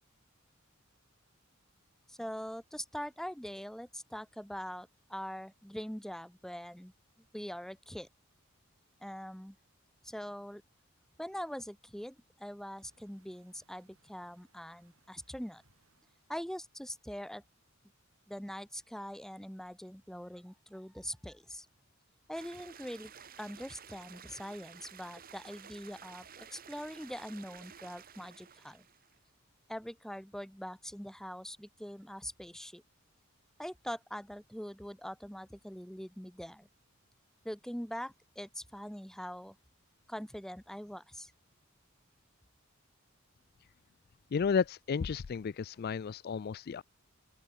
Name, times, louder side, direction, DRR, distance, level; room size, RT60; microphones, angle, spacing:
voice 1, 2.1-6.9 7.3-8.1 9.0-9.6 10.0-10.6 11.2-15.6 16.3-17.4 18.3-21.7 22.3-23.1 23.4-28.8 29.7-32.8 33.6-36.7 37.4-39.6 40.1-41.3, equal, ahead, 1.2 m, -43 dB
sound 1, 12.8-16.5, right 3 dB, 75° right, 6.0 m, -73 dB
sound 2, 22.3-29.2, right 7 dB, 45° right, 1.6 m, -53 dB
voice 2, 44.3-46.8, left 6 dB, 50° left, 0.4 m, -32 dB
open air
head